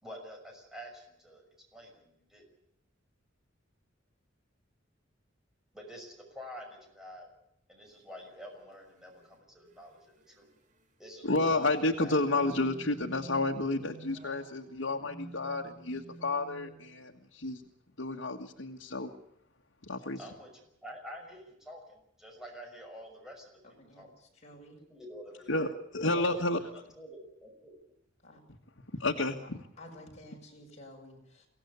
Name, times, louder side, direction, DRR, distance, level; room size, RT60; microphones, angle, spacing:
voice 1, 0.0-1.4 1.7-2.4 5.7-7.3 7.7-10.5 11.0-11.7 12.0-12.2 20.2-24.1 24.9-25.6 26.0-26.4 26.7-27.7, equal, 5° right, 1 dB, 6.1 m, -48 dB
sound 1, 8.0-8.1 9.1-9.4 9.7-9.8 10.2-10.5 11.4-17.1, right 2 dB, 40° right, 1.9 m, -50 dB
voice 2, 11.2-17.6 18.0-19.1 19.8-20.2 25.5-26.6 29.0-29.6, left 2 dB, 80° left, 1 dB, 1.6 m, -31 dB
voice 3, 23.8-24.8 28.2-28.4 29.8-31.5, left 1 dB, 35° left, 0 dB, 6.6 m, -52 dB
24.0 x 17.0 x 8.3 m, 0.79 s
head